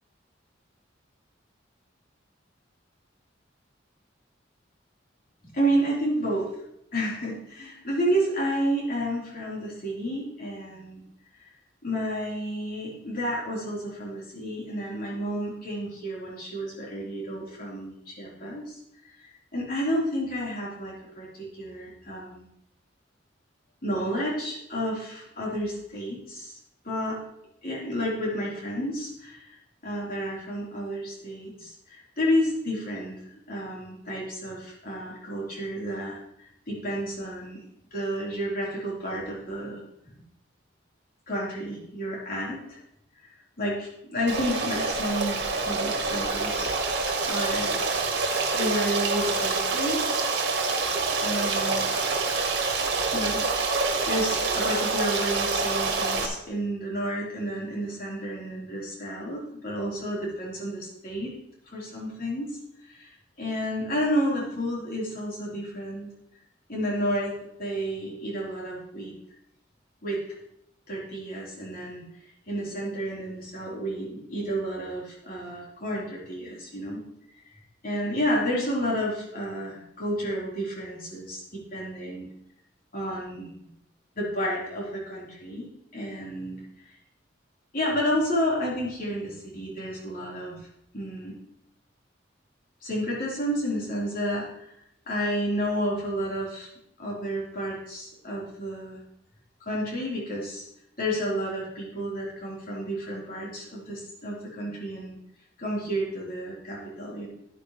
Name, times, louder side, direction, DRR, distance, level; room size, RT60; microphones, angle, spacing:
voice 1, 5.5-6.5 6.9-11.0 11.8-18.8 19.2-22.5 23.8-26.6 26.8-27.2 27.6-29.6 29.8-33.1 33.5-36.2 36.7-37.6 37.9-39.8 41.3-42.8 43.6-46.7 47.2-47.7 48.5-50.3 51.2-51.9 53.1-61.3 61.7-62.6 62.9-63.1 63.4-66.1 66.7-67.3 67.6-69.1 70.0-70.2 70.9-72.0 72.5-77.0 77.8-82.3 82.9-83.5 84.2-85.7 85.9-86.6 87.7-90.6 90.9-91.3 92.8-94.7 95.1-96.7 97.0-99.0 99.6-100.6 101.0-105.2 105.6-107.3, equal, 50° left, -5 dB, 3.8 m, -31 dB
Stream, 44.3-56.3, right 3 dB, 60° right, 1.7 m, -26 dB
11.0 x 10.0 x 3.1 m, 0.77 s
head